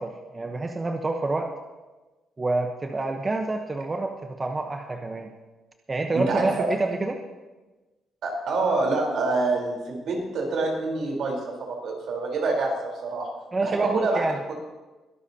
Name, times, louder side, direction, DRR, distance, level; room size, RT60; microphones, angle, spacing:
voice 1, 0.0-1.5 2.4-5.3 5.9-7.2 13.5-14.4, right 3 dB, 25° right, 4 dB, 1.0 m, -27 dB
voice 2, 6.1-6.7 8.2-13.3 13.6-14.5, right 3 dB, 70° right, 0 dB, 4.0 m, -26 dB
22.0 x 12.0 x 2.9 m, 1.2 s
cardioid pair, 90°, 0 cm